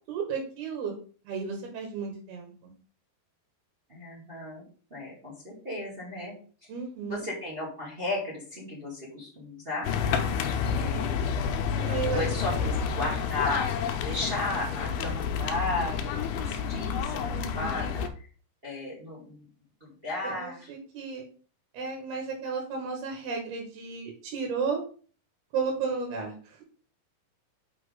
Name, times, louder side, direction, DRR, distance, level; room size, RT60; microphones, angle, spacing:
voice 1, 0.1-0.9 1.2-2.7 6.7-7.2 11.7-12.2 12.6-12.7 17.3-17.9 20.2-21.2 21.7-24.8 25.5-26.6, right 5 dB, 70° right, 1 dB, 3.4 m, -33 dB
voice 2, 3.9-4.6 4.9-6.4 7.0-9.9 10.7-11.4 12.1-13.7 14.0-18.0 18.6-19.4 19.8-20.7, left 2 dB, 20° right, -3 dB, 1.8 m, -34 dB
sound 1, 9.8-18.1, left 7 dB, 80° left, 2.7 m, -29 dB
6.4 x 6.3 x 3.9 m, 0.41 s
omnidirectional pair, 4.7 m